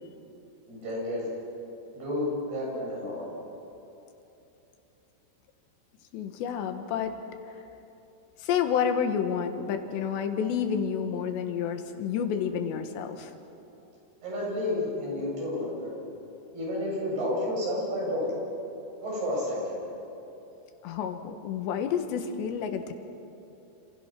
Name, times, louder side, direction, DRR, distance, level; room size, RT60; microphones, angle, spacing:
voice 1, 0.7-1.2 1.9-3.2 14.2-15.9 16.5-18.3 19.0-19.8, left 1 dB, 65° right, -4 dB, 10.0 m, -31 dB
voice 2, 6.1-7.1 8.4-13.3 20.8-22.9, left 7 dB, 80° left, 7 dB, 3.7 m, -29 dB
30.0 x 27.5 x 6.1 m, 2.9 s
omnidirectional pair, 4.9 m